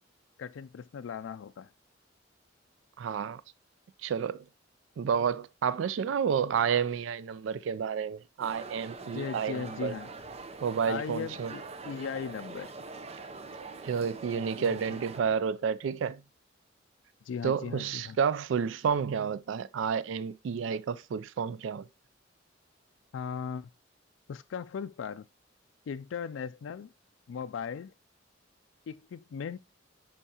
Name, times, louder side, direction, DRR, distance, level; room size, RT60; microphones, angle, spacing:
voice 1, 0.4-1.7 9.1-10.1 10.9-12.7 14.4-15.0 17.2-18.2 23.1-23.7 24.3-25.3 25.9-26.9 27.3-27.9 28.9-29.6, left 6 dB, 80° left, 0.3 m, -38 dB
voice 2, 3.0-3.4 4.0-4.4 5.0-9.9 10.6-11.5 13.8-16.2 17.4-21.9, right 7 dB, 75° right, 0.3 m, -30 dB
sound 1, 8.4-15.2, right 3 dB, 35° right, 0.6 m, -44 dB
10.0 x 4.5 x 2.8 m
head